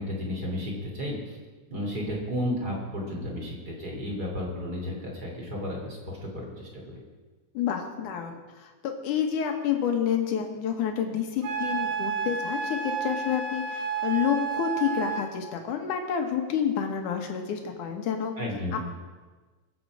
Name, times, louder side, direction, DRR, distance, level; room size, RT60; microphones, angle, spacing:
voice 1, 0.0-1.4 1.7-7.0 18.4-18.8, left 1 dB, 30° right, -2 dB, 3.3 m, -33 dB
voice 2, 7.5-8.4 8.8-18.3 18.7-18.8, left 8 dB, 70° left, 4 dB, 2.8 m, -29 dB
Wind instrument woodwind instrument, 11.4-15.3, right 6 dB, 70° right, 3.0 m, -31 dB
23.5 x 7.9 x 4.9 m, 1.3 s
omnidirectional pair, 3.9 m